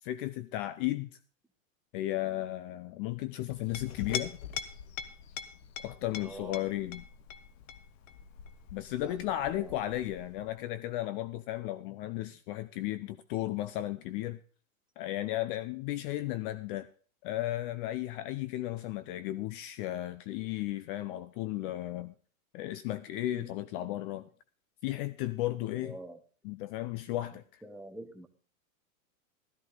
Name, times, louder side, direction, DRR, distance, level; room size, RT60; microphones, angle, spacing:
voice 1, 0.0-1.1 1.9-4.4 5.8-7.0 8.7-14.4 15.0-16.9 17.2-22.1 22.5-24.2 24.8-25.9 26.4-27.6, left 15 dB, 40° left, 15 dB, 0.5 m, -34 dB
Chink clink, 3.5-10.6, left 8 dB, 65° left, 1.2 m, -43 dB
voice 2, 6.2-6.7 9.0-9.7 23.3-23.5 25.7-26.2 27.6-28.3, right 1 dB, ahead, 6 dB, 0.9 m, -46 dB
13.5 x 12.5 x 3.8 m, 0.39 s
hypercardioid pair, 135°, 42 cm